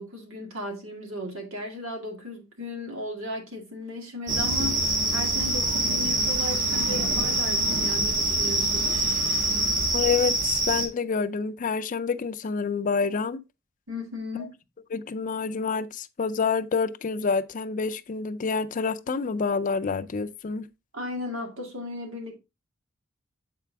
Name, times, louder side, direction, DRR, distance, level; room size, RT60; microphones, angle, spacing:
voice 1, 0.0-9.0 13.9-14.5 20.9-22.4, left 1 dB, 85° right, 2.1 m, -36 dB
sound 1, 4.3-10.9, right 1 dB, 40° right, 1.3 m, -25 dB
voice 2, 9.9-13.4 14.9-20.7, left 5 dB, 40° left, 0.4 m, -27 dB
7.6 x 4.7 x 3.4 m
head